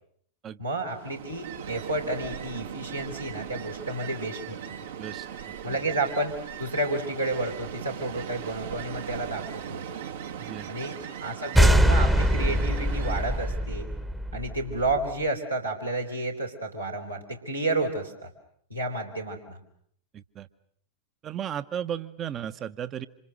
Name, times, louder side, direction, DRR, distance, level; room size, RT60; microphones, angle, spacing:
voice 1, 0.6-4.8 5.6-9.8 10.7-13.9 14.3-18.3 18.7-19.6, right 2 dB, 85° right, -1 dB, 4.1 m, -31 dB
Ocean, 0.9-13.6, right 8 dB, 65° right, 1.8 m, -39 dB
voice 2, 5.0-5.8 10.4-10.7 20.1-20.5 21.2-23.1, right 9 dB, 30° right, 14 dB, 1.1 m, -35 dB
sound 1, 11.5-15.0, equal, 5° right, 1.2 m, -22 dB
28.0 x 27.0 x 6.5 m, 0.65 s
figure-of-eight pair, 90°, 0 cm